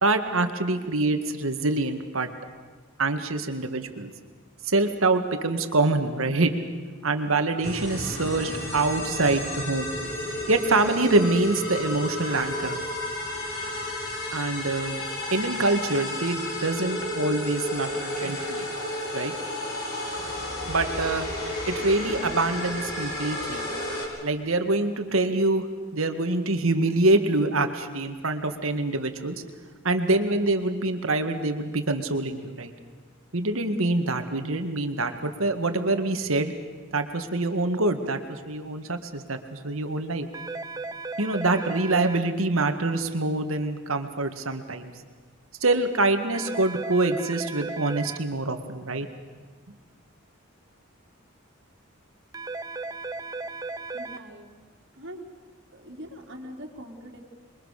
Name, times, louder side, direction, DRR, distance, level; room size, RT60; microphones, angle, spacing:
voice 1, 0.0-2.3 3.0-4.1 4.6-6.5 7.0-9.9 10.5-12.9 14.3-15.0 15.3-18.7 19.1-19.3 20.7-21.3 21.7-23.7 24.2-25.7 25.9-29.4 29.8-32.7 33.3-36.5 36.9-40.3 41.2-44.9 45.6-49.1, right 2 dB, 80° right, 7 dB, 2.0 m, -25 dB
sound 1, 7.6-24.0, left 1 dB, 50° left, 5.7 m, -32 dB
sound 2, 40.3-42.2 46.3-48.2 52.3-54.2, right 3 dB, 15° right, 0.7 m, -35 dB
voice 2, 53.9-54.5 54.9-55.2 55.7-57.2, equal, 55° right, 0 dB, 3.4 m, -42 dB
27.5 x 23.0 x 6.7 m, 1.4 s
head